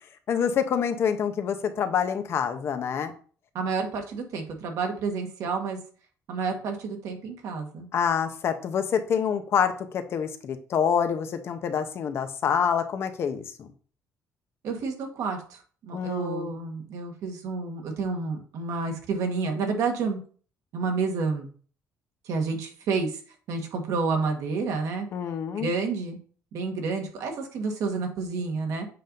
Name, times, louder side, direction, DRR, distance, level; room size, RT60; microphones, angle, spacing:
voice 1, 0.3-3.1 7.9-13.7 15.9-16.5 25.1-25.7, left 7 dB, 45° left, 8 dB, 0.7 m, -27 dB
voice 2, 3.5-5.8 6.3-7.9 14.6-20.2 20.7-21.5 22.3-23.2 23.5-25.1 25.6-26.2 26.5-28.9, right 4 dB, 65° right, 4 dB, 1.4 m, -29 dB
7.6 x 2.6 x 5.2 m, 0.43 s
cardioid pair, 150°, 6 cm